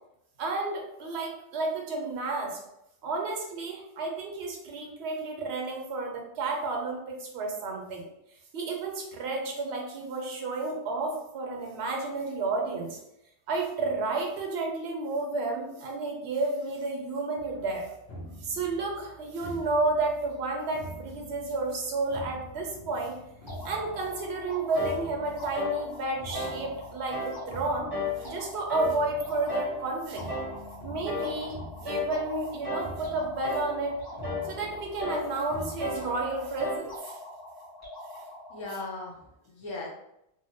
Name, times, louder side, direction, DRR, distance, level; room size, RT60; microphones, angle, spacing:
voice 1, 0.4-2.6 3.0-8.0 8.5-13.0 13.5-17.9 18.4-23.2 23.6-27.9 28.2-30.3 30.8-31.6 31.8-34.0 34.4-37.2, right 3 dB, 70° right, 0 dB, 0.9 m, -31 dB
sound 1, 17.4-36.7, equal, 70° left, 0.9 m, -46 dB
sound 2, 23.5-38.8, left 1 dB, 20° left, 1.4 m, -45 dB
sound 3, 24.7-25.0 25.5-25.8 26.3-26.6 27.1-27.4 27.9-28.2 28.7-29.0 29.5-29.8 30.3-30.6 31.1-31.4 31.9-32.2 32.6-33.0 33.4-33.8 34.2-34.5 35.0-35.3 35.8-36.1 36.6-36.9, left 3 dB, 25° right, 0.7 m, -33 dB
voice 2, 38.5-39.9, left 2 dB, 40° left, -2 dB, 0.4 m, -38 dB
2.6 x 2.1 x 2.7 m, 0.83 s
omnidirectional pair, 1.2 m